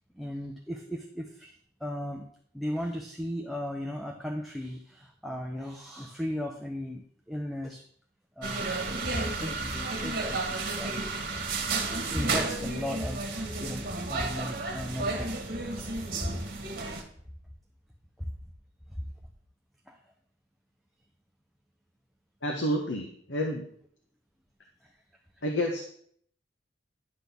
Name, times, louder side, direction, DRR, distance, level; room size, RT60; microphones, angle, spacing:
voice 1, 0.1-1.5 1.8-2.3 2.5-7.8 8.4-11.0 11.9-15.4 15.7-16.4 18.2-18.3 18.9-19.1 19.9-20.1 24.8-24.9, equal, ahead, 1 dB, 0.7 m, -36 dB
sound 1, 8.4-17.0, right 3 dB, 55° right, 1.7 m, -32 dB
voice 2, 22.4-23.7 25.4-25.8, equal, 75° left, 1 dB, 1.2 m, -29 dB
11.0 x 4.1 x 7.0 m, 0.63 s
head